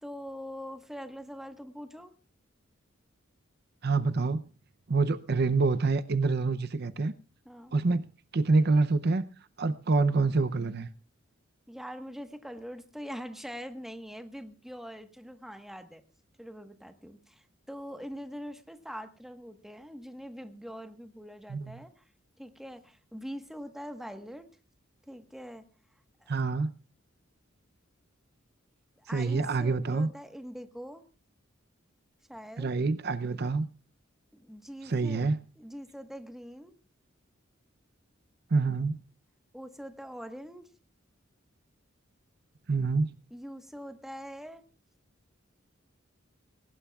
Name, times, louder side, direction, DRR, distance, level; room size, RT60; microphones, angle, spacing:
voice 1, 0.0-2.1 7.4-7.7 11.7-16.0 16.4-22.1 22.4-24.5 25.1-25.7 26.2-26.3 29.0-31.0 32.3-32.7 34.3-35.3 35.6-36.7 39.5-40.7 43.3-44.6, equal, ahead, 1.3 m, -43 dB
voice 2, 3.8-4.5 4.9-7.1 7.7-8.1 8.3-9.2 9.6-10.9 21.5-21.8 26.3-26.7 29.1-30.1 32.6-33.7 34.9-35.4 38.5-39.0 42.7-43.1, right 3 dB, 55° right, 0.6 m, -26 dB
20.5 x 18.5 x 2.4 m
head